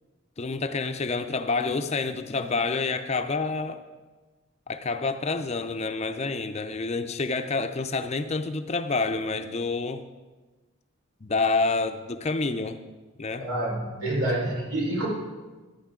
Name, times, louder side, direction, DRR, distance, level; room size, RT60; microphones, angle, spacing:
voice 1, 0.4-3.8 4.7-10.0 11.2-12.8 13.2-13.5, left 3 dB, 30° left, 8 dB, 0.5 m, -28 dB
voice 2, 13.4-15.1, right 1 dB, 80° right, -3 dB, 4.6 m, -27 dB
14.5 x 11.5 x 3.7 m, 1.3 s
head